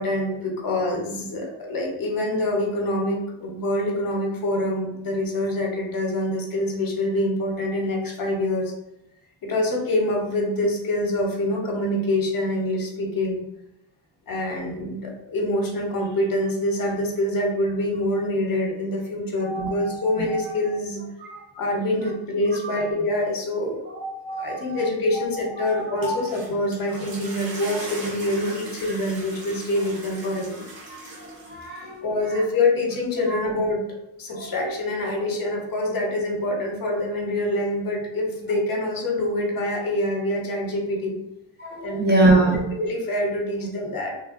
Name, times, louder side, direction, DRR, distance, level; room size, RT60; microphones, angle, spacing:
voice 1, 0.0-8.7 9.4-13.4 14.3-21.0 21.5-23.8 24.4-30.6 32.0-33.8 34.2-41.2 41.8-42.2 42.7-44.1, left 1 dB, 45° left, 0 dB, 0.7 m, -25 dB
voice 2, 19.4-19.9 20.2-20.5 21.2-21.4 23.9-24.8 25.6-26.1 30.9-31.0 31.5-32.1 33.3-33.4 34.4-34.7 41.6-42.6, right 2 dB, 25° right, -3 dB, 0.4 m, -24 dB
sound 1, 25.8-31.8, right 1 dB, 50° right, 0.8 m, -39 dB
3.1 x 2.1 x 2.4 m, 0.89 s
cardioid pair, 105°, 47 cm